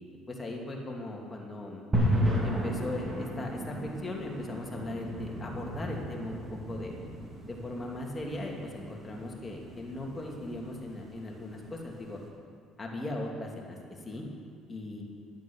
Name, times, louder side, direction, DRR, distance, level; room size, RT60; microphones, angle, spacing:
voice 1, 0.3-1.8 2.4-6.4 6.7-6.9 7.5-12.2 12.8-14.2 14.7-15.0, left 2 dB, 25° left, -1 dB, 2.7 m, -38 dB
sound 1, 1.9-12.2, equal, 20° right, 3.0 m, -34 dB
11.0 x 9.1 x 7.2 m, 2.4 s
supercardioid pair, 80°, 0 cm